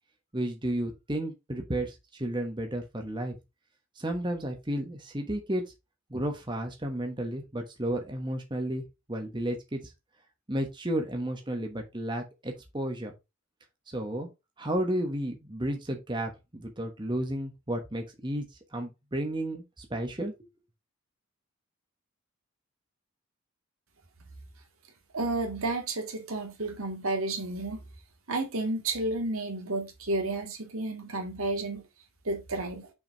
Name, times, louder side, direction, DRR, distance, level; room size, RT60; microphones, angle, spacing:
voice 1, 0.3-3.4 4.0-5.6 6.1-9.8 10.5-13.1 13.9-14.3 14.6-18.5 18.7-20.3, right 1 dB, 20° right, 1.2 m, -32 dB
voice 2, 25.1-27.8 28.3-31.8 32.2-32.9, right 2 dB, 80° right, 2.1 m, -31 dB
6.1 x 4.9 x 4.5 m
head